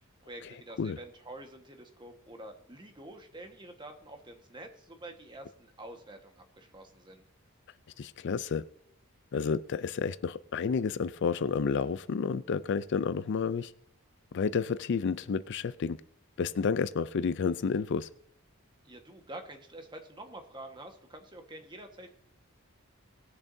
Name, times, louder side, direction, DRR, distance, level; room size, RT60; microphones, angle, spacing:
voice 1, 0.2-7.2 18.8-22.1, right 1 dB, 20° right, 4 dB, 1.4 m, -47 dB
voice 2, 8.0-8.6 9.3-13.7 14.3-16.0 16.4-18.1, left 5 dB, 60° left, 16 dB, 0.4 m, -30 dB
20.0 x 7.2 x 2.7 m, 0.71 s
head